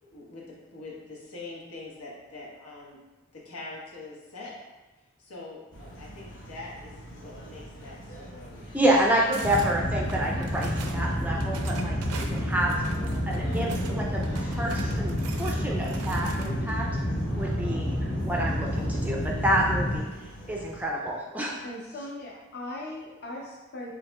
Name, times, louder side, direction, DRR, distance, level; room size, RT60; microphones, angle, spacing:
voice 1, 0.0-3.0 3.3-4.6 5.2-9.0, left 2 dB, 85° left, -4 dB, 1.1 m, -44 dB
sound 1, 5.7-20.8, equal, 60° left, 1.0 m, -44 dB
voice 2, 8.7-12.7 13.3-16.8 17.4-20.0 20.5-21.6, right 1 dB, 5° right, -2 dB, 0.4 m, -28 dB
sound 2, 9.3-9.7 10.1-11.0 11.4-13.9 14.2-16.7, right 4 dB, 90° right, 0.5 m, -43 dB
sound 3, 9.4-20.0, equal, 25° left, 1.3 m, -29 dB
voice 3, 21.6-23.9, left 1 dB, 45° left, -2 dB, 0.6 m, -39 dB
7.1 x 2.8 x 2.2 m, 1.2 s
head